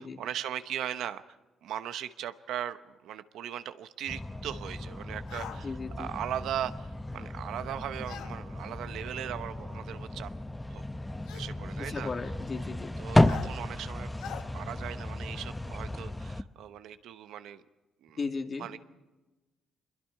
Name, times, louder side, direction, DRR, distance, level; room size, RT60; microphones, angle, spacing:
voice 1, 0.0-1.4 1.6-10.3 10.7-10.8 11.3-12.1 13.0-14.1 14.5-17.6 18.0-18.2 18.6-18.8, right 10 dB, 80° right, 11 dB, 0.9 m, -38 dB
sound 1, 4.1-16.4, left 1 dB, 10° left, 0.7 m, -33 dB
sound 2, 5.3-5.6 8.1-8.3 9.6-9.7 11.3-11.5 13.3-13.5 14.2-14.4, left 8 dB, 85° left, 1.3 m, -41 dB
voice 2, 5.6-6.1 11.8-12.9 18.2-18.7, left 4 dB, 40° left, 4 dB, 2.1 m, -36 dB
25.0 x 22.0 x 4.7 m, 1.1 s
cardioid pair, 90°, 0 cm